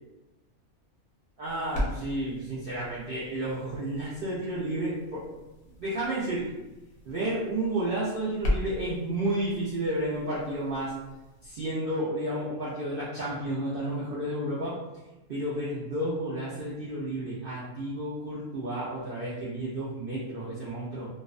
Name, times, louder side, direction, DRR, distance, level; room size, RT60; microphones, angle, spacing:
sound 1, 1.4-11.7, left 1 dB, 75° left, 1.1 m, -38 dB
voice 1, 1.4-5.2 5.8-6.5 7.1-10.9 11.4-14.7 15.3-21.1, right 1 dB, 65° right, -8 dB, 0.5 m, -31 dB
2.6 x 2.1 x 2.4 m, 1.0 s
omnidirectional pair, 1.5 m